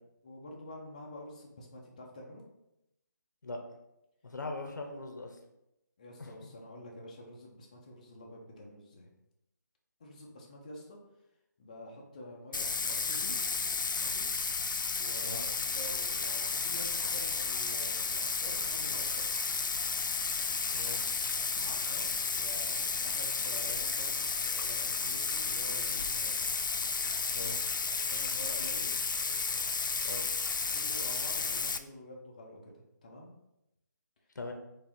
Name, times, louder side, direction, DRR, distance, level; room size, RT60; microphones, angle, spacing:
voice 1, 0.2-2.4 6.0-9.1 10.0-11.0 11.6-13.4 14.0-14.3 15.0-19.4 20.3-20.9 21.3-26.3 27.4-27.5 27.8-28.9 30.7-32.7 33.0-33.3, left 1 dB, 20° left, -1 dB, 0.5 m, -48 dB
voice 2, 4.2-5.4 6.2-6.5 15.2-15.4 20.7-21.0 27.3-27.6 30.0-30.3 34.3-34.5, left 2 dB, 70° left, 3 dB, 0.9 m, -41 dB
Bathtub (filling or washing), 12.5-31.8, left 4 dB, 85° left, 0.4 m, -32 dB
4.7 x 2.6 x 3.6 m, 0.87 s
hypercardioid pair, 170°, 10 cm